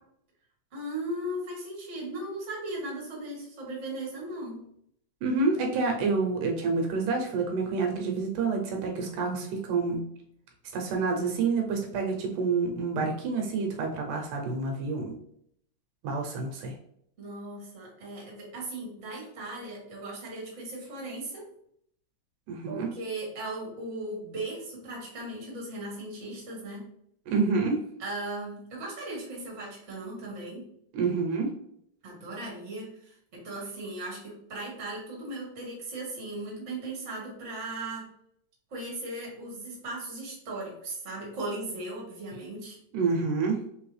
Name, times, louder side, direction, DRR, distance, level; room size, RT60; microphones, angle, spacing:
voice 1, 0.7-4.6 17.2-21.5 22.7-26.8 28.0-30.6 32.0-38.1 38.7-42.8, right 2 dB, 35° right, -3 dB, 1.2 m, -37 dB
voice 2, 5.2-10.1 10.7-15.1 16.0-16.7 22.5-22.9 27.3-27.8 30.9-31.5 42.9-43.6, right 4 dB, 80° right, 2 dB, 2.3 m, -28 dB
4.5 x 3.4 x 3.2 m, 0.70 s
omnidirectional pair, 3.6 m